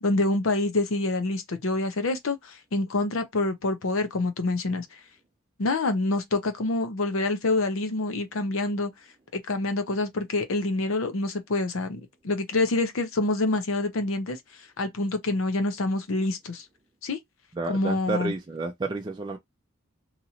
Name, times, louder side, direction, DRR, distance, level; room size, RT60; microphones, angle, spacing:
voice 1, 0.0-4.9 5.6-8.9 9.3-14.4 14.8-16.6 17.0-17.2 17.7-18.3, left 2 dB, 75° left, 0.7 m, -26 dB
voice 2, 17.5-19.4, right 3 dB, 20° right, 0.3 m, -30 dB
2.9 x 2.5 x 2.8 m
head